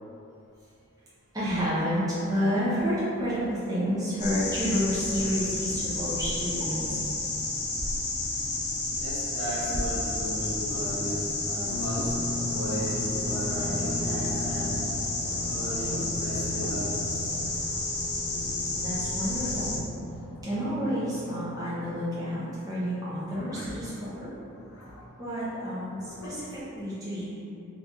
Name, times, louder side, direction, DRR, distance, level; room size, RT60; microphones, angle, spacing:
voice 1, 1.3-7.1 18.8-19.8 20.4-24.3 25.2-27.3, equal, 15° right, -11 dB, 0.6 m, -30 dB
sound 1, 4.2-19.8, left 2 dB, 45° left, 0.5 m, -31 dB
voice 2, 9.0-12.1 12.5-14.8 15.4-17.3, equal, 60° right, -8 dB, 0.9 m, -35 dB
sound 2, 11.7-25.1 25.8-26.3, left 1 dB, 90° left, 0.7 m, -38 dB
3.6 x 3.1 x 2.6 m, 2.7 s
head